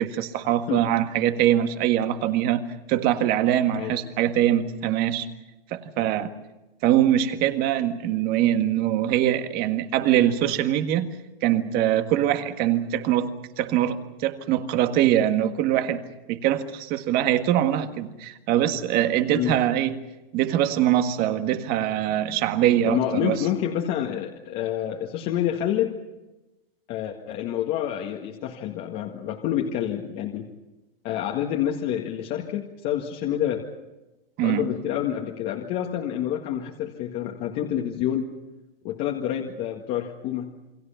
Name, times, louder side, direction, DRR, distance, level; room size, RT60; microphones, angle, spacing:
voice 1, 0.0-2.6 2.9-5.3 5.7-6.3 6.8-11.1 11.4-16.0 16.3-20.0 20.3-23.4 34.4-34.7, right 11 dB, 30° right, 1.8 m, -23 dB
voice 2, 22.9-25.9 26.9-30.5 31.0-33.6 34.4-38.3 38.8-40.5, left 10 dB, 35° left, 1.9 m, -28 dB
28.5 x 22.5 x 5.8 m
hypercardioid pair, 140°, 29 cm